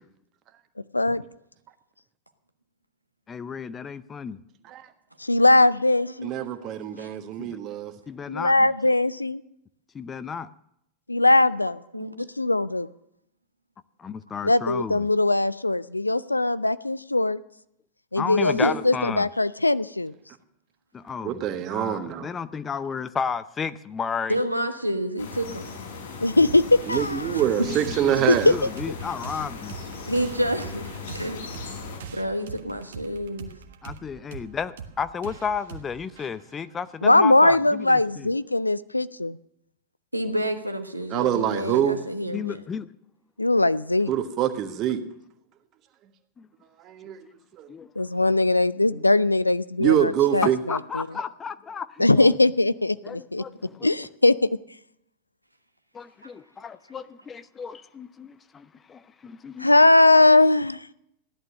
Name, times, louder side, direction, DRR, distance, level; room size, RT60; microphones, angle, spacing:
voice 1, 3.3-4.4 7.4-7.6 8.1-8.7 9.9-10.5 14.0-15.1 18.2-19.3 20.9-24.4 27.6-29.8 33.8-38.3 42.3-42.9 46.4-46.5 47.7-47.9 48.9-49.0 50.7-52.3 53.0-53.9 55.9-59.7, left 6 dB, 20° left, 15 dB, 0.6 m, -33 dB
voice 2, 5.2-6.3 8.3-9.4 11.1-11.8 12.2-12.9 14.4-17.4 18.1-20.1 26.2-26.6 26.9-27.4 28.3-28.4 37.0-39.4 43.4-44.1 48.0-51.1 52.0-53.4 53.8-54.5 59.6-60.8, left 2 dB, 85° left, 17 dB, 0.5 m, -20 dB
voice 3, 6.2-7.9 21.2-22.3 26.9-28.5 41.1-42.0 44.1-45.0 46.8-47.2 47.6-47.7 49.8-50.6, right 10 dB, 35° right, 8 dB, 1.5 m, -25 dB
voice 4, 24.3-25.7 27.3-27.4 30.1-30.9 31.1-31.6 32.1-33.5 40.1-42.6, equal, 90° right, 7 dB, 1.3 m, -28 dB
sound 1, 25.2-32.0, left 5 dB, 65° left, 5.6 m, -38 dB
sound 2, 26.5-37.6, right 6 dB, 60° right, 1.4 m, -43 dB
15.5 x 11.0 x 6.5 m, 0.77 s
figure-of-eight pair, 90°, 0 cm